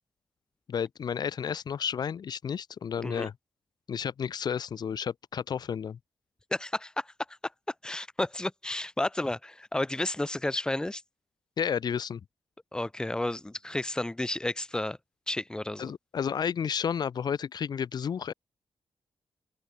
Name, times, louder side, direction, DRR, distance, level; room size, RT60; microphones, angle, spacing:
voice 1, 0.7-3.3 3.9-6.0 11.6-12.2 15.8-18.3, left 7 dB, 55° left, 1.4 m, -31 dB
voice 2, 6.5-7.4 7.8-11.0 12.7-15.0 15.3-15.9, left 1 dB, 10° left, 1.1 m, -32 dB
open air
wide cardioid pair, 140°, 8 cm